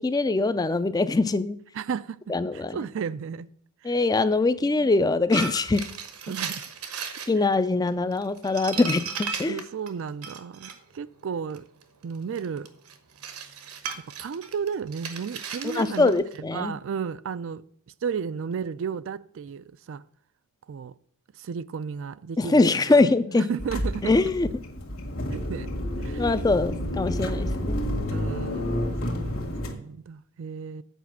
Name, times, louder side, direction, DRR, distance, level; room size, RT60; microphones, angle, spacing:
voice 1, 0.0-1.6 2.3-2.8 3.8-5.9 7.3-9.6 15.6-16.7 22.4-23.5 24.0-24.5 26.2-27.8, left 3 dB, 15° left, 0.3 m, -23 dB
voice 2, 1.7-2.2 2.5-3.5 3.8-4.0 4.6-4.7 6.3-6.6 9.4-11.6 12.0-12.7 13.3-13.6 14.2-16.2 16.5-17.6 18.0-20.0 20.7-20.9 21.4-23.0 23.3-24.1 25.3-25.7 26.0-26.3 28.1-30.8, right 6 dB, 60° right, 0.3 m, -33 dB
sound 1, 5.3-7.3 7.9-10.8 11.5-16.4, right 5 dB, 80° right, 1.2 m, -35 dB
sound 2, 23.6-29.7, left 1 dB, 65° left, 1.7 m, -30 dB
8.2 x 5.0 x 7.3 m
head